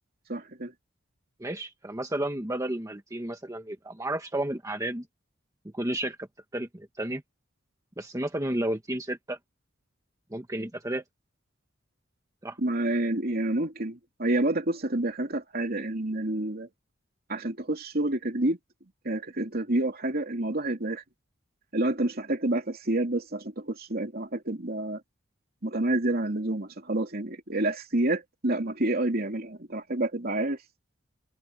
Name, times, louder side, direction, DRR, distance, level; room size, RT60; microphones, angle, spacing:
voice 1, 0.3-0.7 12.6-16.7 17.3-18.6 19.0-21.0 21.7-25.0 25.6-30.6, right 1 dB, 50° right, 3.1 m, -28 dB
voice 2, 1.4-5.0 5.7-6.3 6.5-7.2 8.0-9.4 10.3-11.0 12.4-12.6, right 1 dB, 15° right, 1.3 m, -32 dB
head